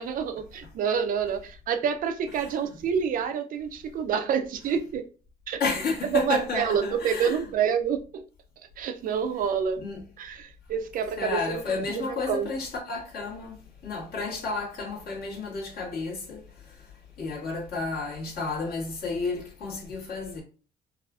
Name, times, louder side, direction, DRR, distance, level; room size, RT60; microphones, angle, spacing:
voice 1, 0.0-5.1 5.5-5.6 6.2-8.2 8.8-9.8 10.2-11.6 11.9-12.5, right 7 dB, 55° right, 0.5 m, -28 dB
voice 2, 2.4-2.8 5.6-7.5 9.8-10.0 11.2-13.6 13.8-16.9 17.2-20.4, left 4 dB, 65° left, 1.7 m, -32 dB
4.7 x 2.4 x 2.4 m
cardioid pair, 110°, 17 cm